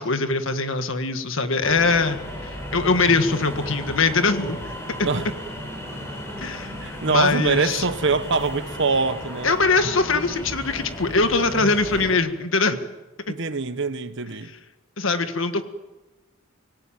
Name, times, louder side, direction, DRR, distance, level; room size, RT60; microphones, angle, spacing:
voice 1, 0.0-4.6 5.0-5.1 6.4-7.8 9.4-12.8 13.3-13.4 15.0-15.6, left 3 dB, 70° left, 1.7 m, -22 dB
sound 1, 1.6-12.2, equal, 15° left, 6.4 m, -35 dB
voice 2, 6.8-9.6 13.3-14.5, right 4 dB, 65° right, 1.3 m, -24 dB
25.5 x 18.0 x 8.9 m
head